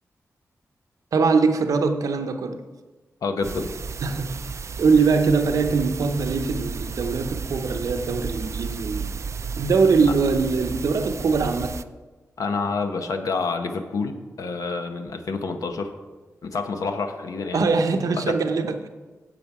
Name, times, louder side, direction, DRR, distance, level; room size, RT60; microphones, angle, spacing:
voice 1, 1.1-2.6 4.0-4.4 4.8-9.1 9.6-11.7 17.5-18.9, right 4 dB, 85° right, 0.7 m, -22 dB
voice 2, 3.2-3.7 12.4-15.9 16.4-17.7 18.1-18.4, left 4 dB, 85° left, 0.9 m, -28 dB
sound 1, 3.4-11.8, right 5 dB, 55° right, 0.4 m, -33 dB
8.8 x 7.6 x 4.8 m
cardioid pair, 75°, 6 cm